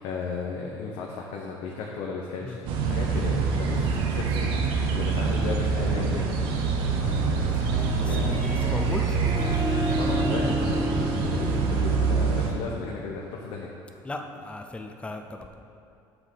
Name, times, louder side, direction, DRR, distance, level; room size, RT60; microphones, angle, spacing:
voice 1, 0.0-7.6 8.0-8.4 10.0-13.7, left 4 dB, 90° left, -1 dB, 0.7 m, -35 dB
sound 1, 2.7-12.5, right 5 dB, 85° right, 0.8 m, -25 dB
Harp, 7.4-12.9, equal, 40° right, 1.6 m, -32 dB
voice 2, 7.9-9.2 9.5-9.6 14.0-15.5, left 2 dB, 15° left, 4 dB, 0.5 m, -35 dB
7.8 x 3.7 x 6.5 m, 2.5 s
cardioid pair, 135°, 9 cm